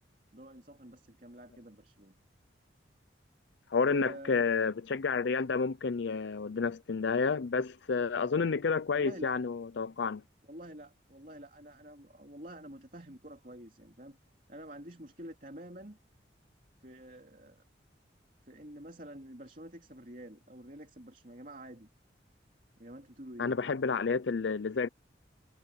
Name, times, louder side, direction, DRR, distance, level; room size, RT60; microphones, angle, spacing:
voice 1, 0.3-2.1 3.8-4.5 8.3-8.5 8.9-9.3 10.4-14.2 14.5-16.0 16.8-17.6 18.4-21.9 22.8-23.6, right 1 dB, 45° right, 3.1 m, -48 dB
voice 2, 3.7-10.2 23.4-24.9, left 5 dB, 70° left, 0.5 m, -30 dB
head